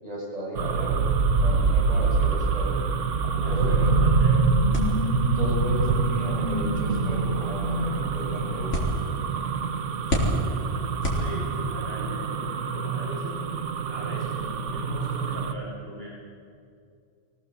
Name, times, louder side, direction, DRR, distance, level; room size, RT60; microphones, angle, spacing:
voice 1, 0.0-1.1 1.3-2.8 3.2-3.9 5.2-8.9, equal, 30° right, -4 dB, 6.5 m, -35 dB
sound 1, 0.5-15.5, right 5 dB, 80° right, 1.4 m, -26 dB
sound 2, 2.7-9.2, left 1 dB, 25° left, 3.2 m, -31 dB
voice 2, 3.4-4.4 11.1-13.4 13.9-16.1, equal, 55° right, -5 dB, 5.6 m, -38 dB
sound 3, 4.7-11.8, equal, 85° left, 4.9 m, -32 dB
23.5 x 18.0 x 8.3 m, 2.4 s
omnidirectional pair, 1.2 m